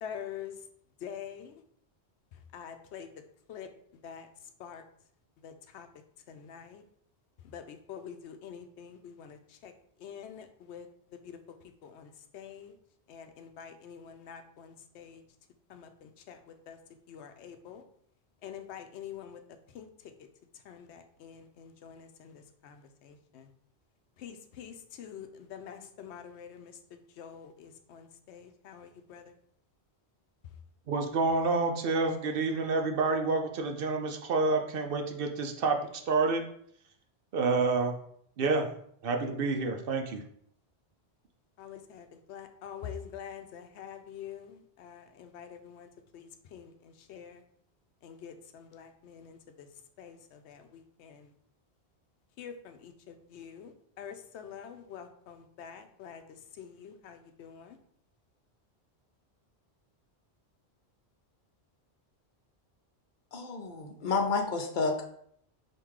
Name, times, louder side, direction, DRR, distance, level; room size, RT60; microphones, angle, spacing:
voice 1, 0.0-0.5 1.0-1.5 2.5-3.1 3.5-3.7 4.0-4.3 4.6-4.8 5.4-5.9 6.3-6.8 7.5-9.7 10.0-10.9 11.8-12.7 13.1-15.2 15.7-16.4 16.7-16.8 17.1-17.8 18.4-19.4 19.7-19.9 20.7-22.3 22.6-22.8 23.0-23.4 24.2-26.7 27.2-29.2 41.6-45.9 46.1-46.7 47.1-47.4 48.0-49.7 50.0-51.3 52.4-53.7 54.0-56.2 56.6-57.8, left 8 dB, 85° left, 0.9 m, -46 dB
voice 2, 30.9-35.8 36.1-36.4 37.3-38.0 38.4-38.7 39.0-40.2, right 3 dB, 65° right, 0.7 m, -28 dB
voice 3, 63.3-65.1, left 4 dB, 55° left, 0.7 m, -30 dB
3.7 x 2.6 x 4.6 m
omnidirectional pair, 1.1 m